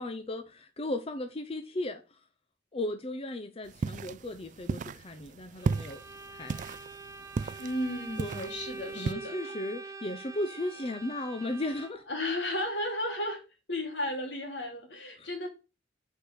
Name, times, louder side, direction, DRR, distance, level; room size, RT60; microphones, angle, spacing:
voice 1, 0.0-2.2 2.7-6.0 6.3-6.8 7.4-7.6 8.2-8.5 9.0-12.0 15.2-15.3, left 1 dB, 30° left, 0.6 m, -36 dB
sound 1, 3.7-9.1, right 4 dB, 45° right, 0.3 m, -35 dB
Bowed string instrument, 5.6-12.2, right 3 dB, 20° right, 0.7 m, -44 dB
voice 2, 7.6-9.5 12.1-13.4 13.7-15.5, left 1 dB, 75° left, 3.0 m, -34 dB
6.6 x 4.6 x 6.6 m
head